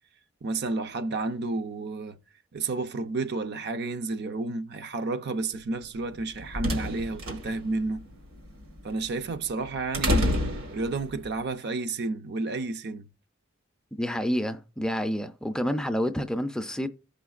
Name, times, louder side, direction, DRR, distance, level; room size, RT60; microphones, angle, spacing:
voice 1, 0.4-2.2 2.5-8.0 8.8-10.4 10.7-13.1, right 3 dB, 55° right, 0.5 m, -31 dB
sound 1, 6.0-11.3, left 1 dB, 85° right, 1.6 m, -30 dB
voice 2, 14.0-16.9, equal, 5° left, 0.4 m, -28 dB
15.0 x 5.1 x 2.4 m
head